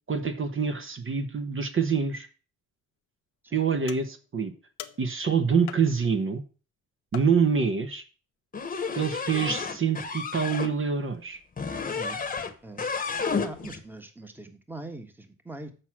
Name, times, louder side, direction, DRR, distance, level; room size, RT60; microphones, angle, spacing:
voice 1, 0.1-2.3 3.5-4.5 5.0-6.4 7.1-8.0 9.0-11.4, right 6 dB, 40° right, 7 dB, 1.2 m, -26 dB
sound 1, 3.9-4.3 4.8-5.2 5.7-6.2 7.1-7.7, left 12 dB, 75° left, 0.8 m, -44 dB
sound 2, 8.5-10.7 11.6-12.5 12.8-13.8, left 5 dB, 25° left, 1.2 m, -31 dB
voice 2, 13.4-15.7, right 2 dB, 5° right, 7 dB, 1.3 m, -42 dB
7.4 x 6.6 x 6.2 m, 0.36 s
cardioid pair, 90°, 30 cm